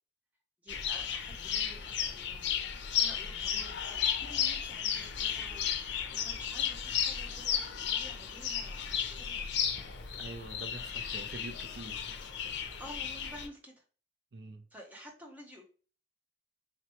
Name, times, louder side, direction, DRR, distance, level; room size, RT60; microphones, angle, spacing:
voice 1, 0.6-9.5 12.8-13.8 14.7-15.6, equal, 10° right, 0.8 m, -51 dB
sound 1, 0.7-13.5, left 8 dB, 70° left, 0.5 m, -34 dB
voice 2, 10.1-12.1 12.4-12.8 14.3-14.7, right 2 dB, 65° right, 0.5 m, -46 dB
4.3 x 3.0 x 3.0 m
head